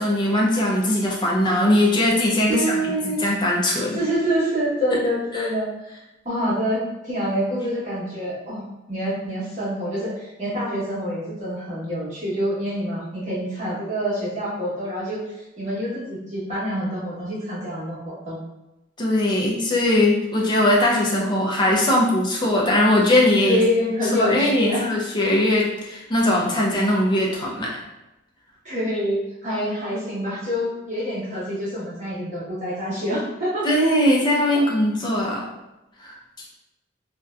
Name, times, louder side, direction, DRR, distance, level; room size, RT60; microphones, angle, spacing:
voice 1, 0.0-4.0 5.3-5.5 19.0-23.6 24.2-27.7 33.6-35.4 36.0-36.1, left 1 dB, 25° left, -3 dB, 0.5 m, -20 dB
voice 2, 2.5-3.2 3.9-6.0 6.2-18.4 23.4-24.8 28.6-33.6 34.5-34.6, equal, 35° right, -8 dB, 1.1 m, -26 dB
2.6 x 2.1 x 2.4 m, 0.98 s
head